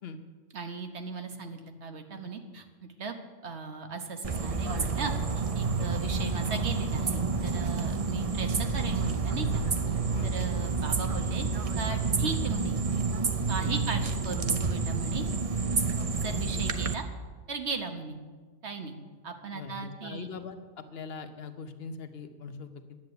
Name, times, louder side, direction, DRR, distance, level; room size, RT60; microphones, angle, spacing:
voice 1, 0.5-3.1 3.4-9.6 10.2-11.5 11.8-12.8 13.5-15.3 16.1-17.0 17.5-18.2 18.6-18.9 19.2-20.3, right 4 dB, 65° right, 5 dB, 1.4 m, -37 dB
sound 1, 4.2-16.9, right 4 dB, 35° right, 0.7 m, -29 dB
voice 2, 19.5-20.6 20.9-23.0, left 4 dB, 60° left, 9 dB, 1.2 m, -41 dB
10.5 x 8.1 x 9.6 m, 1.4 s
omnidirectional pair, 1.2 m